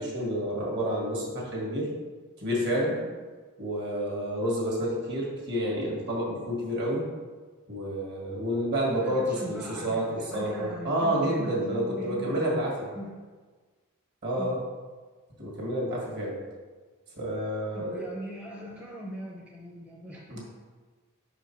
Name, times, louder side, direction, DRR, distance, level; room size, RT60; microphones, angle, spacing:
voice 1, 0.0-1.9 2.4-3.0 3.6-7.0 7.7-12.9 14.2-14.6 15.4-16.4 17.2-18.1 20.3-20.4, equal, 50° right, -3 dB, 1.8 m, -29 dB
voice 2, 9.0-12.5 12.9-13.2 14.4-14.6 17.7-20.4, equal, 5° right, -3 dB, 0.6 m, -40 dB
5.3 x 4.9 x 4.5 m, 1.4 s
head